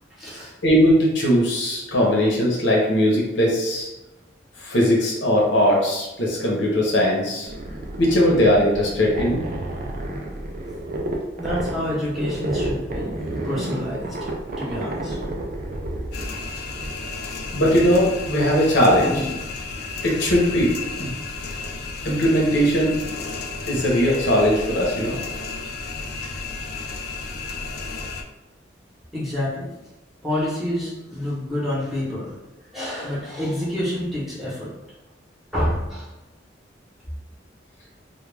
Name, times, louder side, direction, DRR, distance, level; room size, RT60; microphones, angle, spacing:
voice 1, 0.1-0.5 11.4-14.2 14.6-15.2 17.2-17.3 18.8-19.3 19.8-19.9 29.1-29.7 30.2-32.3 32.7-34.7 35.5-36.1, left 1 dB, ahead, -9 dB, 0.8 m, -28 dB
voice 2, 0.6-3.9 4.6-7.5 8.0-9.4 17.5-19.1 20.0-21.1 22.0-23.0 23.7-25.2, equal, 70° left, -3 dB, 0.7 m, -19 dB
sound 1, 7.4-17.0, right 1 dB, 50° right, 0.4 m, -30 dB
sound 2, 16.1-28.2, left 4 dB, 55° left, 0.3 m, -33 dB
2.3 x 2.2 x 3.2 m, 1.0 s
head